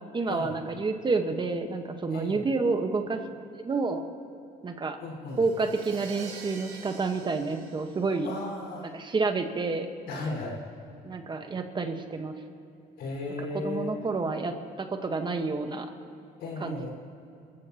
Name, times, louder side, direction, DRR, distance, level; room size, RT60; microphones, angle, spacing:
voice 1, 0.1-3.2 3.6-4.0 4.6-5.0 5.4-8.3 8.9-9.9 11.0-12.3 13.4-15.9 16.6-16.9, right 3 dB, 30° right, 5 dB, 1.3 m, -29 dB
voice 2, 2.1-2.4 5.0-5.4 8.2-8.9 10.1-10.6 13.0-13.9 16.4-16.9, left 3 dB, 80° left, -2 dB, 4.9 m, -35 dB
Crash cymbal, 5.3-9.0, right 5 dB, 75° right, 3.1 m, -46 dB
29.5 x 15.0 x 2.9 m, 2.7 s
cardioid pair, 110°, 17 cm